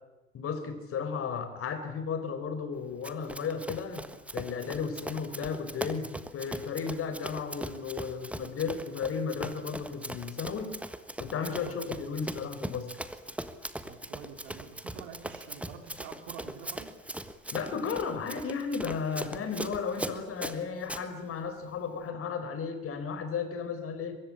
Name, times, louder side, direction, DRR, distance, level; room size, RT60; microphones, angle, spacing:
voice 1, 0.3-10.8 11.2-12.9 17.5-24.2, left 6 dB, 35° left, 9 dB, 4.6 m, -34 dB
Run, 3.0-21.0, right 1 dB, 5° right, 1.4 m, -40 dB
voice 2, 11.4-11.8 13.8-17.0, right 8 dB, 55° right, 7 dB, 3.6 m, -47 dB
23.5 x 22.0 x 8.8 m, 1.0 s
figure-of-eight pair, 80°, 41 cm